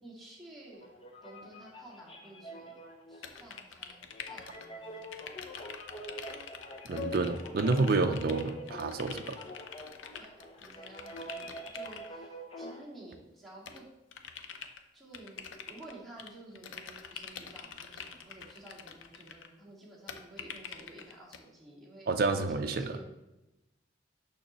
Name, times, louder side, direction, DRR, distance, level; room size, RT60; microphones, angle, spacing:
voice 1, 0.0-0.8 1.2-2.7 3.1-5.2 10.2-10.3 10.6-13.8 14.9-15.4 15.7-23.0, right 2 dB, ahead, -8 dB, 1.9 m, -52 dB
sound 1, 0.7-12.8, equal, 30° left, 0.6 m, -45 dB
sound 2, 3.2-4.7 5.0-12.1 13.7-14.8 15.1-16.3 16.6-19.5 20.1-21.4, left 7 dB, 90° left, 0.6 m, -46 dB
voice 2, 6.8-9.4 22.1-23.0, right 3 dB, 50° right, 7 dB, 0.4 m, -29 dB
6.4 x 6.1 x 3.0 m, 0.99 s
head